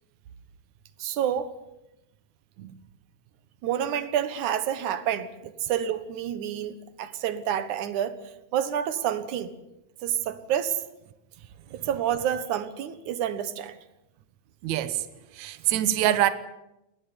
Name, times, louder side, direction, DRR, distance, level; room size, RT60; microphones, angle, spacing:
voice 1, 1.0-1.5 3.6-9.5 10.0-10.8 11.7-13.8 15.7-16.1, right 10 dB, 65° right, 2.2 m, -29 dB
voice 2, 14.6-15.1 15.3-16.3, right 13 dB, 90° right, 1.6 m, -24 dB
20.5 x 19.0 x 9.7 m
omnidirectional pair, 4.8 m